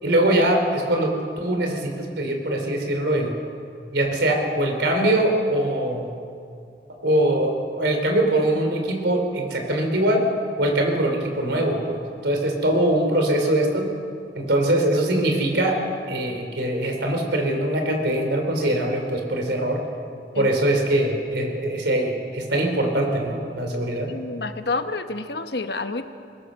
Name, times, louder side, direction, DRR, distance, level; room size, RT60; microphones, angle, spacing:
voice 1, 0.0-3.3 3.9-6.1 7.0-10.2 10.6-13.9 14.4-15.8 16.1-19.8 20.3-24.1, right 1 dB, 85° right, 3 dB, 3.7 m, -22 dB
voice 2, 24.1-26.0, left 3 dB, 70° left, 8 dB, 1.1 m, -29 dB
21.5 x 21.5 x 6.4 m, 2.4 s
head